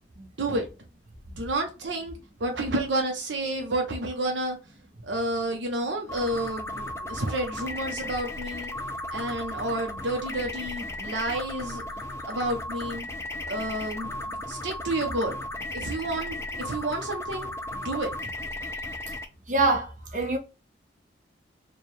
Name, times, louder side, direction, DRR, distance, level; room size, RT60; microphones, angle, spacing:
voice 1, 0.2-0.7 1.4-2.1 2.4-4.6 5.0-8.7 9.1-11.8 12.2-13.1 13.5-14.1 14.5-15.4 15.7-18.1, right 1 dB, 80° right, 0.7 m, -30 dB
sound 1, 6.1-19.2, left 1 dB, 15° left, 0.4 m, -35 dB
voice 2, 19.5-20.4, right 2 dB, 40° right, 0.8 m, -24 dB
3.3 x 2.3 x 4.4 m
head